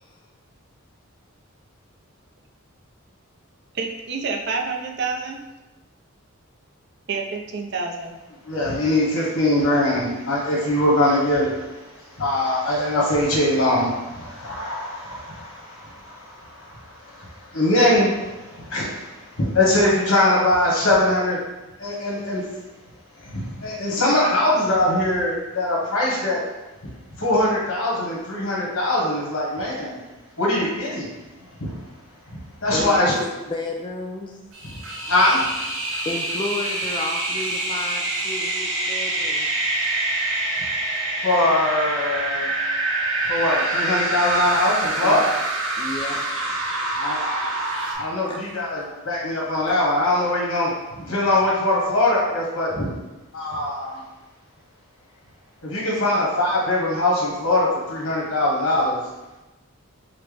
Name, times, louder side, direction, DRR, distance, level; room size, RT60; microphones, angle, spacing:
voice 1, 3.7-5.4 7.1-8.2, right 4 dB, 55° right, 2 dB, 0.5 m, -28 dB
voice 2, 8.4-11.9 12.1-21.4 21.8-22.4 23.2-26.4 26.8-26.9 27.2-30.0 30.4-31.1 31.6-31.7 32.3-33.1 35.1-35.5 41.2-42.5 43.3-45.3 46.9-47.5 47.9-50.7 51.0-52.9 53.3-54.0 55.6-59.0, left 1 dB, 80° left, -4 dB, 1.3 m, -22 dB
voice 3, 32.7-34.4 35.8-39.5 45.0-45.2 45.8-46.2 48.3-48.4, left 2 dB, 20° left, -1 dB, 0.3 m, -32 dB
sound 1, 34.5-47.9, right 2 dB, 70° right, 1.1 m, -26 dB
5.7 x 2.1 x 3.3 m, 1.1 s
head